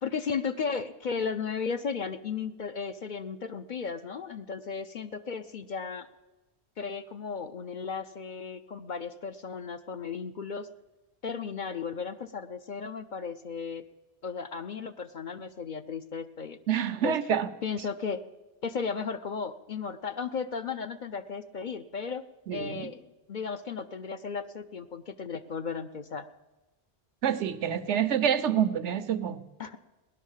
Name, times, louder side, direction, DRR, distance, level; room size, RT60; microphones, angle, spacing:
voice 1, 0.0-6.1 6.8-10.7 11.2-13.8 14.2-16.6 17.0-17.2 17.6-18.2 18.6-22.2 22.5-26.3 29.6-29.8, left 5 dB, 50° left, 9 dB, 0.6 m, -35 dB
voice 2, 16.7-17.5 22.5-22.9 27.2-29.4, right 9 dB, 80° right, 13 dB, 1.1 m, -27 dB
17.0 x 11.0 x 7.3 m, 1.1 s
omnidirectional pair, 1.2 m